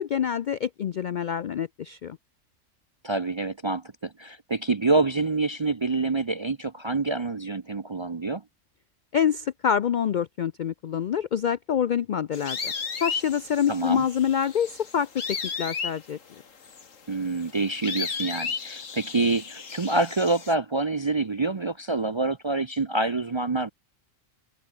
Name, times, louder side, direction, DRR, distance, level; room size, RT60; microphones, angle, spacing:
voice 1, 0.0-2.2 9.1-12.7 13.0-16.2, left 8 dB, 65° left, 0.4 m, -26 dB
voice 2, 3.0-8.4 13.7-14.0 17.1-23.7, right 3 dB, 35° right, 0.4 m, -26 dB
sound 1, 12.3-20.5, left 5 dB, 80° left, 2.2 m, -35 dB
omnidirectional pair, 1.3 m